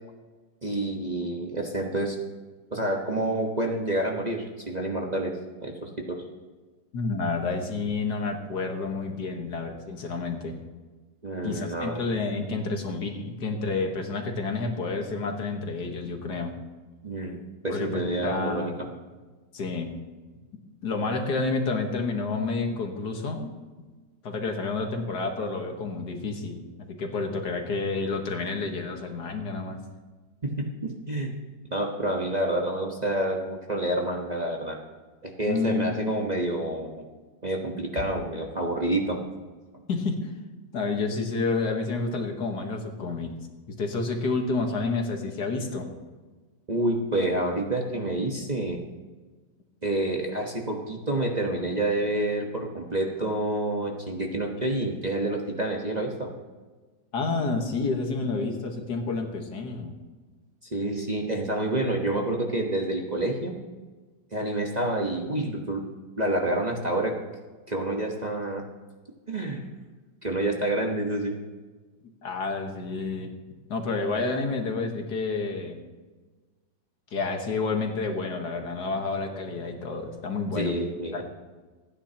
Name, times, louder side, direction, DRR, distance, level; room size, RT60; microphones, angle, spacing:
voice 1, 0.6-2.2 2.7-5.3 5.6-6.2 11.2-12.0 17.0-17.4 17.6-18.7 30.4-31.3 31.7-34.8 35.2-37.0 37.4-39.2 46.7-48.8 49.8-56.3 60.7-63.6 64.3-65.8 66.2-67.2 67.7-68.6 69.3-69.6 70.2-71.3 80.5-81.2, right 1 dB, 25° right, 0 dB, 1.2 m, -28 dB
voice 2, 6.9-10.6 11.4-16.6 17.7-18.9 19.5-19.9 20.8-23.5 24.2-29.8 35.5-35.9 39.9-40.3 40.7-43.3 43.7-45.9 57.1-59.9 72.2-73.3 73.7-75.8 77.1-80.7 81.1-81.2, left 3 dB, 65° left, 3 dB, 2.0 m, -29 dB
27.5 x 9.9 x 2.9 m, 1.3 s
omnidirectional pair, 1.9 m